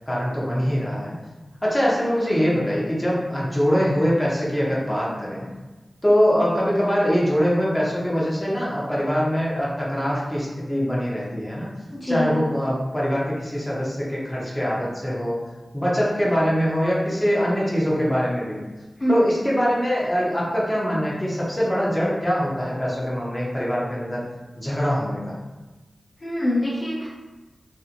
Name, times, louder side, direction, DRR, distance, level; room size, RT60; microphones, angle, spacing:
voice 1, 0.1-1.2 1.6-5.5 6.0-11.7 12.1-15.4 15.7-18.6 19.1-24.2 24.6-25.2, equal, 10° left, -6 dB, 0.7 m, -23 dB
voice 2, 11.9-12.3 19.0-19.2 26.2-27.1, left 1 dB, 45° left, -7 dB, 0.6 m, -24 dB
2.6 x 2.6 x 2.5 m, 1.2 s
wide cardioid pair, 85°, 0 cm